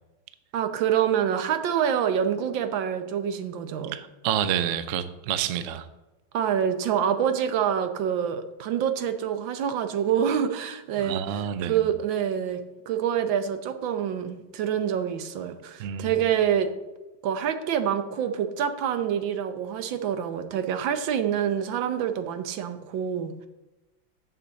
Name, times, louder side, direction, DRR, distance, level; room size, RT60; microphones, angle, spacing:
voice 1, 0.5-4.0 6.3-16.7 17.2-23.5, right 8 dB, 85° right, 1.6 m, -26 dB
voice 2, 3.9-5.9 11.0-11.8 15.8-16.2, right 9 dB, 65° right, 0.7 m, -28 dB
6.9 x 6.7 x 7.5 m
omnidirectional pair, 2.0 m